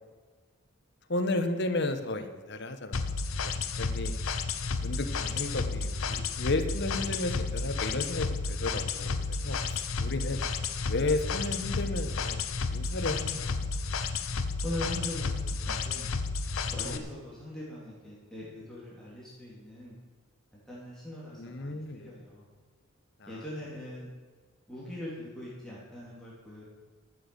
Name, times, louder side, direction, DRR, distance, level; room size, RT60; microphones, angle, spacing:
voice 1, 1.1-3.1 3.4-3.5 3.8-4.1 4.8-9.2 9.4-10.4 10.9-12.4 12.7-13.6 16.8-17.0 21.4-22.1 23.2-23.3, left 2 dB, 55° left, 7 dB, 1.1 m, -33 dB
sound 1, 2.9-17.0, left 4 dB, 85° left, 0.8 m, -32 dB
voice 2, 14.6-16.1 16.7-19.9 20.7-22.5 23.3-24.1 24.7-26.6, left 1 dB, 5° left, -8 dB, 3.0 m, -41 dB
13.0 x 7.3 x 7.0 m, 1.4 s
head